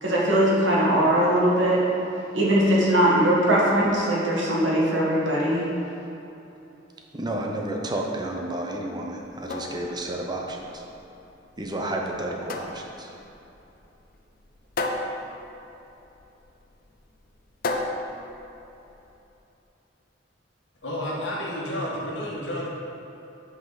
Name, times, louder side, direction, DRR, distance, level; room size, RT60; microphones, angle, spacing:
voice 1, 0.0-1.8 2.3-5.6, right 1 dB, 85° right, -5 dB, 1.7 m, -20 dB
voice 2, 7.1-10.8 11.6-13.1, right 1 dB, 20° right, 0 dB, 0.8 m, -31 dB
sound 1, 9.2-19.2, left 2 dB, 50° left, 0.6 m, -35 dB
voice 3, 20.8-22.7, left 1 dB, 70° left, -4 dB, 1.6 m, -30 dB
8.1 x 5.4 x 4.0 m, 3.0 s
head